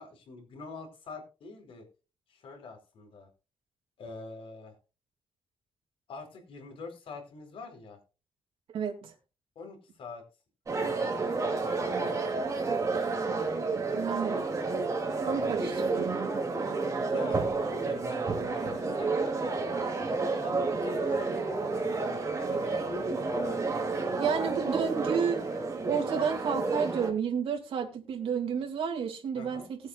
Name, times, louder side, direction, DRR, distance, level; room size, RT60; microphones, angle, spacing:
voice 1, 0.0-1.9 2.3-3.3 4.0-4.7 6.1-8.0 9.6-10.2 10.7-11.6 15.2-15.6 17.0-19.2 20.4-22.0 22.3-24.2 24.5-24.6 29.3-29.7, left 3 dB, 75° left, 4.2 m, -45 dB
voice 2, 8.7-9.1 13.9-14.4 15.3-16.1 24.2-25.5 25.8-29.8, right 7 dB, 80° right, 2.3 m, -31 dB
sound 1, 10.7-27.1, right 3 dB, 35° right, 2.8 m, -30 dB
19.5 x 8.3 x 2.5 m
wide cardioid pair, 135°, 9 cm